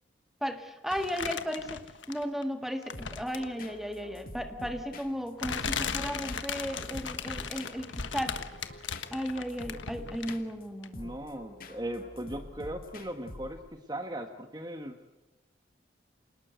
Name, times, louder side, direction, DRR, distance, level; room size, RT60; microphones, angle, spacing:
voice 1, 0.4-8.4 8.7-8.8 9.1-11.2, equal, ahead, 6 dB, 1.7 m, -35 dB
sound 1, 0.9-2.4 2.8-3.6 4.6-4.7 5.4-10.5 10.8-10.9, left 6 dB, 85° left, 1.5 m, -37 dB
sound 2, 2.9-13.8, left 1 dB, 50° left, 2.0 m, -47 dB
voice 2, 10.9-15.0, right 1 dB, 20° right, 6 dB, 1.4 m, -38 dB
28.0 x 19.5 x 8.1 m, 1.0 s
head